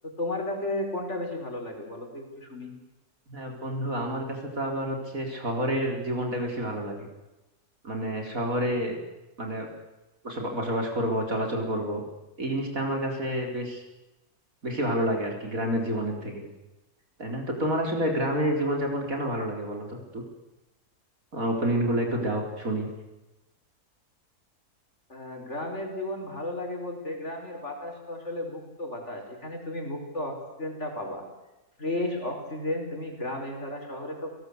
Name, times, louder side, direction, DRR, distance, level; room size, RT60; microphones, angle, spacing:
voice 1, 0.0-2.7 25.1-31.2 31.8-34.3, left 1 dB, 45° left, 3 dB, 5.2 m, -34 dB
voice 2, 3.3-7.0 7.8-8.9 9.4-9.7 10.2-12.1 12.4-13.8 14.6-16.4 17.2-20.2 21.3-22.9, right 1 dB, 55° right, 2 dB, 4.6 m, -29 dB
30.0 x 18.5 x 8.1 m, 1.0 s
omnidirectional pair, 1.7 m